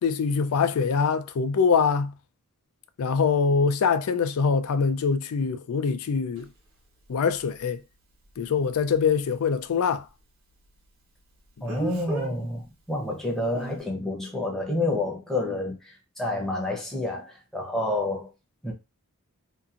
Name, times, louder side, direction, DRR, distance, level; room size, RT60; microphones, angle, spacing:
voice 1, 0.0-2.1 3.0-6.5 7.1-7.8 8.4-10.0, left 5 dB, 70° left, 0.4 m, -24 dB
Speech, 6.4-6.5 11.7-12.3 13.5-13.8, right 2 dB, 80° right, 1.2 m, -34 dB
voice 2, 11.6-18.3 18.6-18.7, left 2 dB, ahead, 0.7 m, -29 dB
2.8 x 2.5 x 2.4 m
head